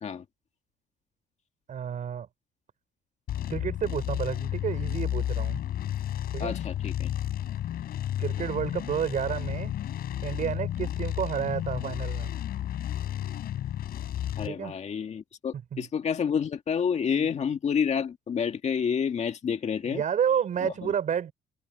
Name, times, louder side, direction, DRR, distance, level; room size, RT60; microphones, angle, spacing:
voice 1, 1.7-2.3 3.5-5.6 6.3-6.5 8.2-9.7 10.2-12.3 14.5-14.7 15.7-15.8 19.8-21.3, right 8 dB, 50° right, 6.4 m, -30 dB
sound 1, 3.3-14.5, left 11 dB, 60° left, 6.1 m, -32 dB
voice 2, 6.4-7.1 14.4-20.0 20.6-20.9, left 7 dB, 40° left, 2.0 m, -29 dB
cardioid pair, 110°, 17 cm